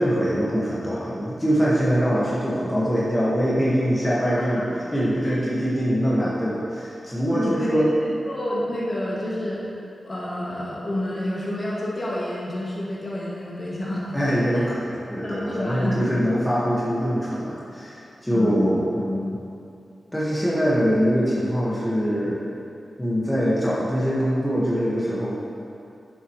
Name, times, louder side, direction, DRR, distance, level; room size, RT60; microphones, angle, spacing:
voice 1, 0.0-7.9 14.1-19.4 20.1-22.5 23.0-25.4, equal, 10° left, -8 dB, 1.6 m, -23 dB
voice 2, 7.3-9.6 10.0-14.2 14.5-14.6 15.2-16.0 18.3-18.6, left 1 dB, 35° left, -6 dB, 2.1 m, -29 dB
11.0 x 8.0 x 3.1 m, 2.7 s
wide cardioid pair, 110°, 0 cm